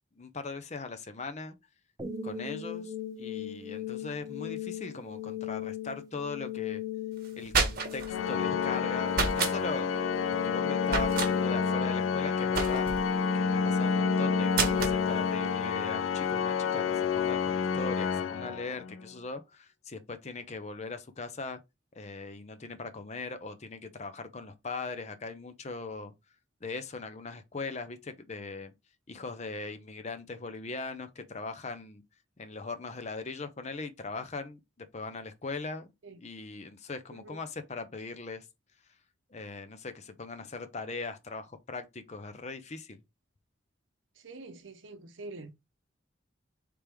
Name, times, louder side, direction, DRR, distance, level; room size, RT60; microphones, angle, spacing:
voice 1, 0.2-1.6 2.2-2.9 3.2-6.8 7.4-9.9 10.3-12.9 13.3-21.6 22.0-26.1 26.6-28.7 29.1-32.0 32.4-34.6 34.9-35.9 36.2-38.5 39.3-43.0, left 3 dB, 35° left, 0.6 m, -40 dB
sound 1, 2.0-17.0, left 11 dB, 15° right, 0.8 m, -38 dB
sound 2, 7.2-8.1 9.1-9.6 10.9-11.3 12.5-13.1 14.5-15.0, right 4 dB, 50° right, 1.0 m, -29 dB
Organ, 8.1-19.1, left 5 dB, 80° left, 0.4 m, -29 dB
voice 2, 44.2-45.5, right 3 dB, 70° right, 0.7 m, -45 dB
3.4 x 3.4 x 4.5 m
head